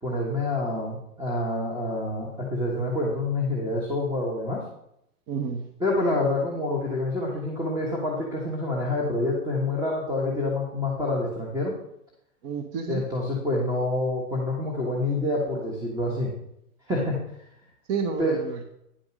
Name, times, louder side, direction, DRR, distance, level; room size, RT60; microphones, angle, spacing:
voice 1, 0.0-4.6 5.8-11.7 12.9-16.3 16.9-17.2 18.2-18.4, left 2 dB, 10° right, -2 dB, 1.4 m, -27 dB
voice 2, 5.3-5.7 12.4-13.0 17.9-18.6, right 5 dB, 30° right, 5 dB, 0.8 m, -30 dB
10.0 x 5.2 x 6.1 m, 0.77 s
hypercardioid pair, 145°, 44 cm